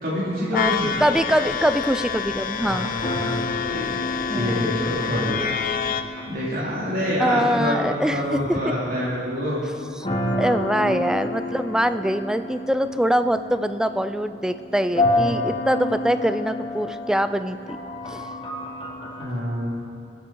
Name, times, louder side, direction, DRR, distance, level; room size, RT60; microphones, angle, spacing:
voice 1, 0.0-0.9 2.6-3.4 3.6-3.9 4.3-5.4 6.3-7.8 8.1-9.6 10.8-10.9 19.2-19.8, equal, 55° right, -7 dB, 2.6 m, -26 dB
sound 1, 0.5-6.0, left 7 dB, 50° left, 0.6 m, -28 dB
sound 2, 0.6-19.3, left 1 dB, 30° left, 1.8 m, -31 dB
voice 2, 1.0-2.9 4.3-4.8 7.2-8.7 10.4-17.6 18.1-18.3, equal, 5° right, 11 dB, 0.4 m, -23 dB
21.0 x 8.0 x 4.6 m, 2.4 s
head